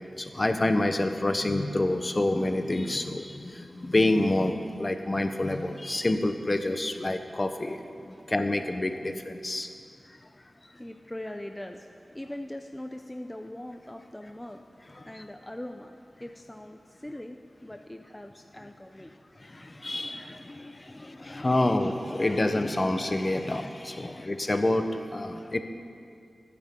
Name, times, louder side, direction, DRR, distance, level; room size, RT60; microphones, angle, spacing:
voice 1, 0.2-9.7 15.0-15.1 19.5-25.6, left 1 dB, 35° left, 7 dB, 1.0 m, -28 dB
voice 2, 10.8-14.6 15.1-19.1 20.9-21.0 24.0-24.2, left 1 dB, 15° left, 5 dB, 0.7 m, -41 dB
21.0 x 10.0 x 3.9 m, 2.4 s
cardioid pair, 50°, 0 cm